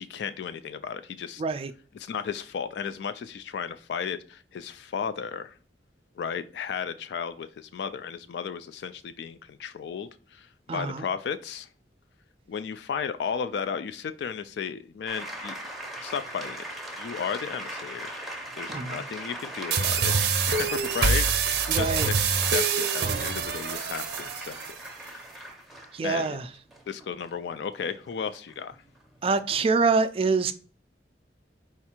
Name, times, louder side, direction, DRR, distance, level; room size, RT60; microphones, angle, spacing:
voice 1, 0.0-1.4 1.9-5.6 6.2-11.7 12.5-15.5 16.0-16.6 16.9-18.1 18.6-21.9 22.2-24.8 25.0-25.2 26.0-26.4 26.9-28.8, left 7 dB, 70° left, 0.3 m, -34 dB
voice 2, 1.4-1.7 10.7-11.0 18.7-19.0 21.7-22.1 25.9-26.5 29.2-30.5, right 4 dB, 35° right, 0.3 m, -25 dB
sound 1, 15.1-29.5, right 1 dB, ahead, 0.7 m, -39 dB
sound 2, 19.7-24.7, right 5 dB, 65° right, 0.7 m, -25 dB
4.4 x 2.4 x 4.3 m
head